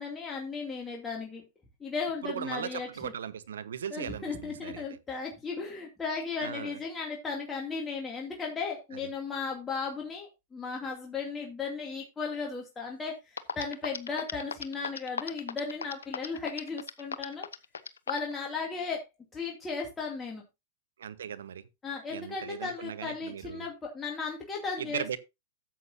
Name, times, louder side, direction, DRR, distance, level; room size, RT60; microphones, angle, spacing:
voice 1, 0.0-1.4 1.8-3.1 3.9-17.5 18.1-19.1 19.3-20.4 21.8-25.2, left 4 dB, 20° left, 2.4 m, -36 dB
voice 2, 2.2-5.0 6.4-6.8 8.9-9.0 21.0-21.7 22.1-23.7 24.8-25.2, right 8 dB, 80° right, 1.0 m, -38 dB
sound 1, 13.0-13.1 13.4-18.3, left 6 dB, 90° left, 0.8 m, -35 dB
13.0 x 8.0 x 2.7 m
hypercardioid pair, 105°, 0 cm